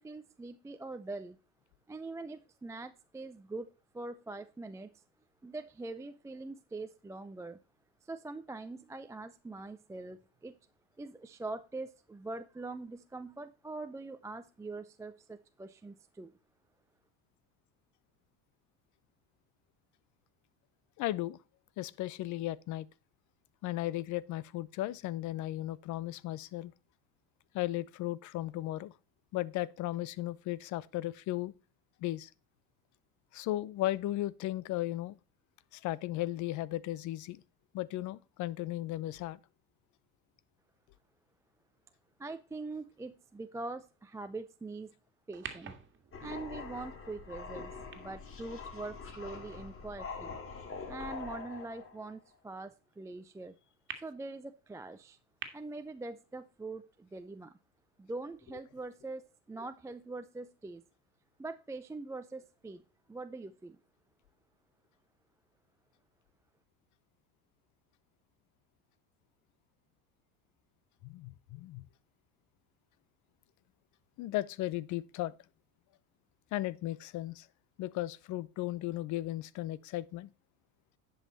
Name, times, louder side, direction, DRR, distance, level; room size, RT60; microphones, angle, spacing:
voice 1, 0.0-1.4 1.9-5.0 5.4-7.6 8.0-10.6 11.0-16.3 42.2-44.9 45.3-45.7 46.2-50.3 50.9-53.5 54.0-55.2 55.5-57.6 58.0-60.8 61.4-62.8 63.1-63.8, right 3 dB, 10° right, 0.5 m, -43 dB
voice 2, 21.0-21.4 21.8-22.9 23.6-26.7 27.5-28.9 29.3-31.5 32.0-32.3 33.3-35.2 35.7-37.4 37.7-39.4 71.0-71.9 74.2-75.3 76.5-77.5 77.8-80.3, left 15 dB, 55° left, 0.7 m, -36 dB
sound 1, 45.3-49.8 50.4-50.5 53.9-54.0 55.4-55.5, right 6 dB, 30° right, 1.9 m, -48 dB
sound 2, 46.1-52.1, left 4 dB, 35° left, 2.6 m, -44 dB
10.0 x 5.6 x 4.1 m
supercardioid pair, 90°, 36 cm